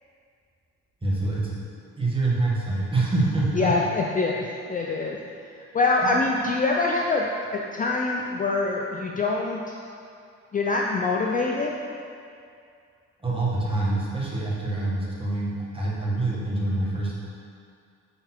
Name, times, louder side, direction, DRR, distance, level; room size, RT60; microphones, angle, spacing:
voice 1, 1.0-1.6 2.0-3.7 6.0-6.2 13.2-17.1, right 2 dB, 15° right, -6 dB, 1.5 m, -26 dB
voice 2, 3.6-5.2 5.5-9.8 10.5-11.7, left 3 dB, 30° left, -1 dB, 0.4 m, -25 dB
5.3 x 4.1 x 4.4 m, 2.4 s
cardioid pair, 90°, 30 cm